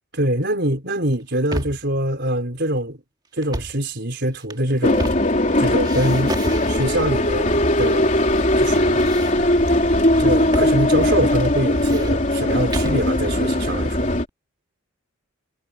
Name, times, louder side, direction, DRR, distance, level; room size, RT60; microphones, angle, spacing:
voice 1, 0.1-3.0 3.3-5.2 5.6-6.3 6.7-8.1 8.6-9.1 10.2-14.1, right 1 dB, 50° right, 4.9 m, -24 dB
sound 1, 1.1-1.9 3.4-3.8 4.3-5.5 5.8-7.1 7.8-8.4 8.7-9.7 10.5-10.8 11.0-11.1 11.6-13.0, right 1 dB, 20° right, 2.2 m, -31 dB
sound 2, 4.8-14.2, left 1 dB, 35° left, 3.5 m, -19 dB
head